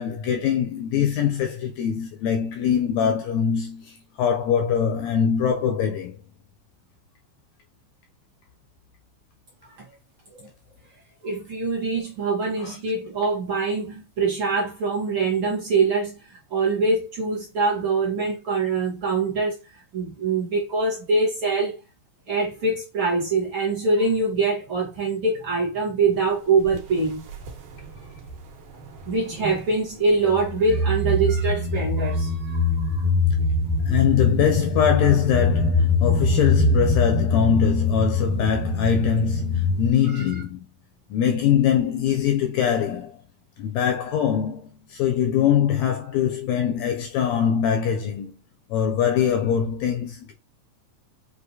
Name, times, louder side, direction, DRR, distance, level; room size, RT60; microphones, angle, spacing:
voice 1, 0.0-6.2 12.6-12.8 33.9-40.7 41.1-43.2 43.6-44.6 44.9-48.3 48.7-50.3, left 8 dB, 80° left, 1.7 m, -22 dB
voice 2, 11.2-19.6 19.9-21.7 22.3-27.3 29.1-33.1 40.1-40.2, right 3 dB, 55° right, 1.5 m, -24 dB
sound 1, 26.6-26.8 27.3-28.4 28.8-29.7 30.2-39.9, left 2 dB, 80° right, 2.4 m, -23 dB
6.2 x 2.5 x 2.7 m
omnidirectional pair, 3.5 m